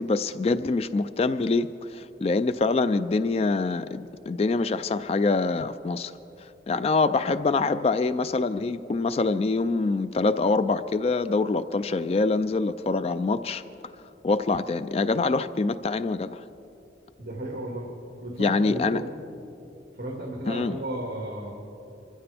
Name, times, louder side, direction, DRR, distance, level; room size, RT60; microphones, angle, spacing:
voice 1, 0.0-6.1 6.7-13.6 14.2-16.4 18.4-19.0 20.5-20.8, left 3 dB, 35° left, 12 dB, 0.3 m, -25 dB
voice 2, 17.2-17.9 18.2-19.1 20.0-21.5, right 1 dB, 55° right, -1 dB, 1.9 m, -34 dB
25.0 x 15.5 x 3.4 m, 2.8 s
head